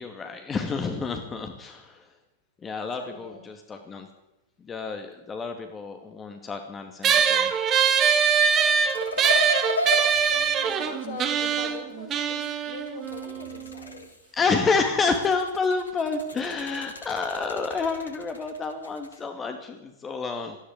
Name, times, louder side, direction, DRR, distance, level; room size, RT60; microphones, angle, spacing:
voice 1, 0.0-2.1 2.6-4.1 4.6-7.5 14.3-20.6, left 4 dB, 20° left, 6 dB, 2.3 m, -29 dB
voice 2, 2.8-3.4 9.2-9.5 10.3-14.1, left 3 dB, 60° left, 7 dB, 4.8 m, -41 dB
sound 1, 7.0-13.8, right 7 dB, 30° right, 2.4 m, -23 dB
sound 2, 8.8-11.6 12.9-14.4 15.0-19.2, left 2 dB, 75° left, 3.0 m, -34 dB
19.0 x 14.5 x 9.6 m, 0.96 s
figure-of-eight pair, 90°, 0 cm